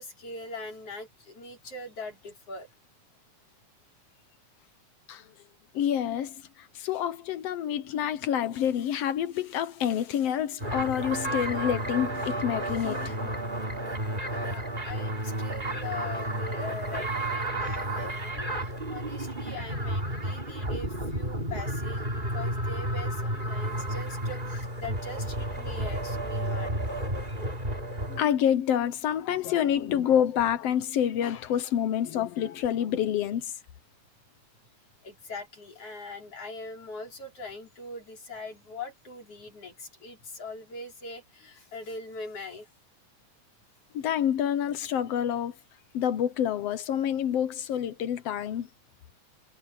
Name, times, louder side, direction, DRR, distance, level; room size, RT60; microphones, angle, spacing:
voice 1, 0.0-2.7 14.3-26.8 35.0-42.7, left 3 dB, 50° left, 6.1 m, -41 dB
voice 2, 5.7-13.4 28.1-33.5 43.9-45.6 45.9-48.7, left 9 dB, 65° left, 1.7 m, -28 dB
sound 1, 10.6-28.2, right 1 dB, 15° right, 3.9 m, -32 dB
omnidirectional pair, 3.5 m